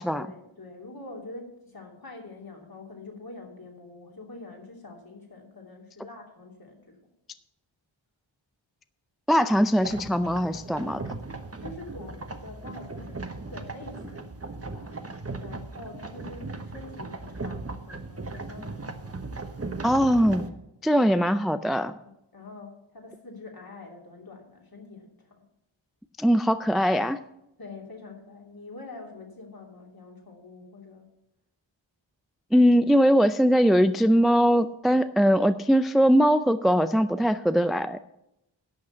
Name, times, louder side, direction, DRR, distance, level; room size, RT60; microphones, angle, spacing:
voice 1, 0.1-7.0 11.6-14.3 14.7-15.0 15.4-19.6 22.3-25.4 27.6-31.1, left 3 dB, 50° left, 0 dB, 3.0 m, -45 dB
voice 2, 9.3-11.0 19.8-20.5 20.8-21.9 26.2-27.2 32.5-38.0, equal, ahead, 11 dB, 0.4 m, -21 dB
sound 1, 9.8-20.5, right 3 dB, 30° right, 1.1 m, -38 dB
11.5 x 6.4 x 8.0 m, 0.84 s
wide cardioid pair, 80°, 47 cm